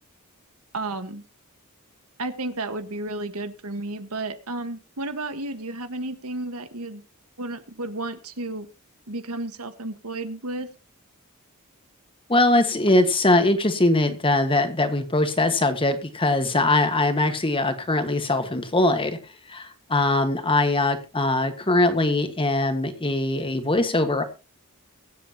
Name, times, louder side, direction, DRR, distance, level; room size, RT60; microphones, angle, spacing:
voice 1, 0.7-1.2 2.2-7.0 7.4-8.7 9.1-10.7, right 2 dB, 75° right, 9 dB, 1.6 m, -32 dB
voice 2, 12.3-19.2 19.5-24.2, left 2 dB, 25° left, 8 dB, 1.6 m, -21 dB
23.5 x 8.3 x 3.0 m, 0.30 s
head